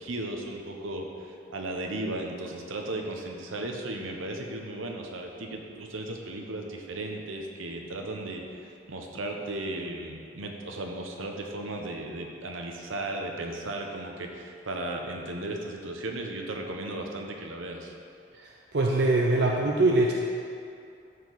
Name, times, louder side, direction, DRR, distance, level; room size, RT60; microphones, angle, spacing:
voice 1, 0.0-17.9, right 2 dB, 80° right, 2 dB, 1.0 m, -36 dB
voice 2, 18.3-20.1, right 2 dB, 55° right, -1 dB, 0.6 m, -23 dB
13.0 x 4.7 x 4.0 m, 2.5 s
head